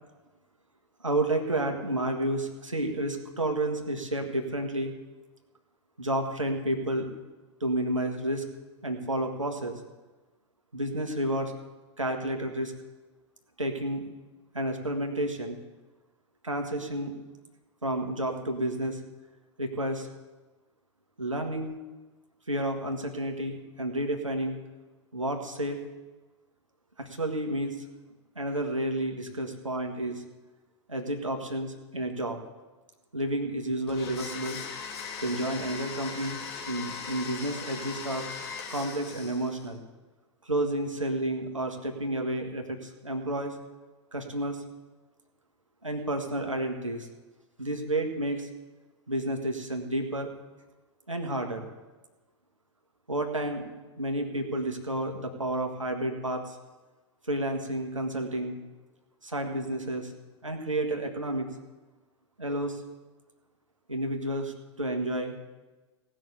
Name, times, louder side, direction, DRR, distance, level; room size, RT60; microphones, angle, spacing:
voice 1, 1.0-4.9 6.0-7.1 7.6-8.5 8.8-9.7 10.7-11.5 12.0-12.7 13.6-14.0 14.5-15.6 16.4-17.2 17.8-19.0 19.6-20.1 21.2-21.7 22.5-24.6 25.1-25.8 27.0-27.8 28.3-30.2 30.9-32.4 33.1-34.6 35.2-36.4 36.7-38.3 38.7-39.8 40.4-43.6 44.1-44.6 45.8-47.1 47.6-48.5 49.1-50.3 51.1-51.7 53.1-53.7 54.0-56.6 57.3-58.6 59.2-60.1 60.4-61.5 62.4-62.8 63.9-65.3, right 1 dB, 90° right, 3 dB, 1.7 m, -30 dB
Domestic sounds home sounds, 33.9-39.7, left 5 dB, 55° left, 2.5 m, -39 dB
17.0 x 6.4 x 8.2 m, 1.2 s
figure-of-eight pair, 95°, 16 cm